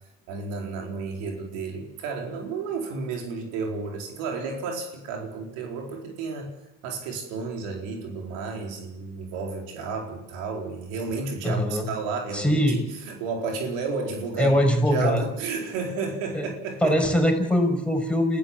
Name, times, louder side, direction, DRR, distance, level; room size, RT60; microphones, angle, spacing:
voice 1, 0.3-6.5 6.8-14.5 14.9-16.9, right 4 dB, 85° right, 2 dB, 4.3 m, -32 dB
voice 2, 11.4-11.9 12.3-12.8 14.4-15.2 16.3-16.5 16.8-18.4, equal, 5° left, 3 dB, 6.0 m, -22 dB
28.5 x 15.0 x 7.4 m, 0.91 s
supercardioid pair, 80°, 31 cm